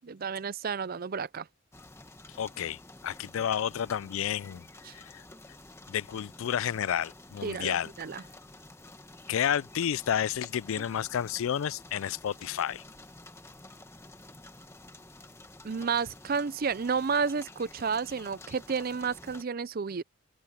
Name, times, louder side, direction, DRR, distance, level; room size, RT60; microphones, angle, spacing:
voice 1, 0.0-1.5 4.8-4.9 7.4-8.2 15.6-20.0, right 5 dB, 45° right, 0.5 m, -31 dB
sound 1, 1.7-19.4, left 2 dB, 15° left, 1.5 m, -50 dB
voice 2, 2.3-4.6 4.9-5.2 5.9-7.9 9.3-12.8, left 9 dB, 80° left, 0.4 m, -31 dB
head